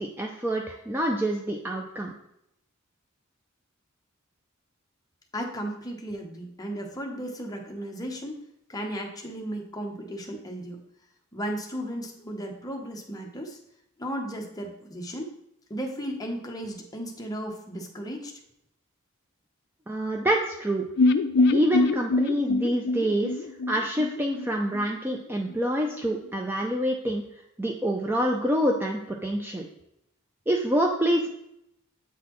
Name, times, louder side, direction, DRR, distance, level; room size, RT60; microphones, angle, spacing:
voice 1, 0.0-2.1 19.9-20.9 21.5-23.3 23.7-27.2 27.6-29.7 30.5-31.3, equal, 10° right, 1 dB, 0.4 m, -26 dB
voice 2, 5.3-8.4 8.7-10.8 11.3-13.6 14.0-15.3 15.7-18.3, equal, 20° left, 1 dB, 0.9 m, -35 dB
sound 1, 21.0-24.8 25.1-25.2 25.5-25.6, left 3 dB, 55° left, 0.4 m, -24 dB
8.2 x 4.0 x 3.0 m, 0.78 s
head